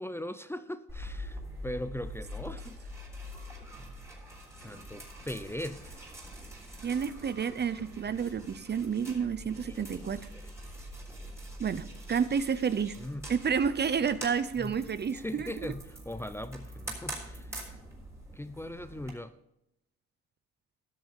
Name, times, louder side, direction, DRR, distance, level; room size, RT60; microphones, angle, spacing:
voice 1, 0.0-2.9 4.6-6.0 7.8-7.9 9.5-10.0 10.3-10.5 13.0-13.3 14.0-14.1 14.6-14.8 15.1-17.5 18.3-19.3, left 1 dB, 10° left, 12 dB, 0.6 m, -40 dB
sound 1, 0.9-19.1, equal, 10° right, 3.7 m, -44 dB
voice 2, 6.8-10.2 11.6-13.0 13.3-15.5, right 6 dB, 35° right, 15 dB, 0.6 m, -30 dB
14.0 x 6.3 x 5.3 m, 0.84 s
cardioid pair, 90°, 30 cm